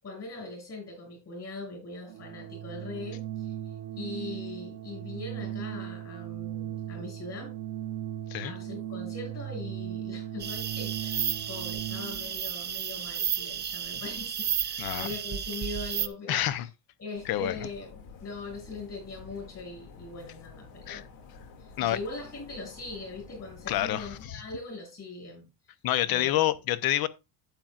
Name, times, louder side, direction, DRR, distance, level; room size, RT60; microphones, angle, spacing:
voice 1, 0.0-7.5 8.4-16.7 17.0-21.0 21.6-25.5 26.1-26.3, left 3 dB, 35° left, 6.6 m, -41 dB
Organ, 2.0-12.4, right 12 dB, 75° right, 0.9 m, -38 dB
sound 1, 10.4-16.1, right 9 dB, 25° right, 0.5 m, -32 dB
voice 2, 16.3-16.7 17.3-17.6 20.9-21.0 21.8-22.0 23.7-24.4 25.8-27.1, left 13 dB, 55° left, 0.8 m, -27 dB
sound 2, 17.1-24.3, left 4 dB, 80° left, 2.4 m, -50 dB
11.5 x 9.2 x 2.4 m
cardioid pair, 165°, 43 cm